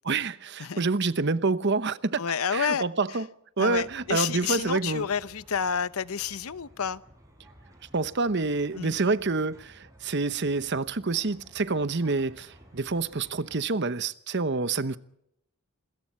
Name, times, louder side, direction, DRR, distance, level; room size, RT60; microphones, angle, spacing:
voice 1, 0.0-2.2 2.5-3.3 3.6-5.1 7.9-15.0, right 3 dB, 50° right, 0.9 m, -27 dB
voice 2, 2.2-2.8 3.6-7.0 8.8-9.0, left 7 dB, 75° left, 0.8 m, -29 dB
sound 1, 3.6-13.7, equal, 15° right, 6.0 m, -55 dB
27.5 x 21.5 x 4.4 m
head